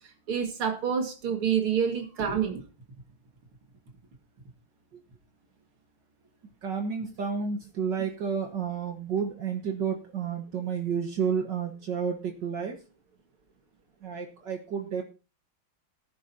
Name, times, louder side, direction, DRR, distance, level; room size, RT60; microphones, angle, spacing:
voice 1, 0.3-2.6, right 7 dB, 90° right, 5 dB, 2.9 m, -27 dB
voice 2, 6.6-12.8 14.0-15.0, right 6 dB, 60° right, 4 dB, 2.0 m, -31 dB
19.0 x 10.0 x 2.8 m, 0.32 s
omnidirectional pair, 2.3 m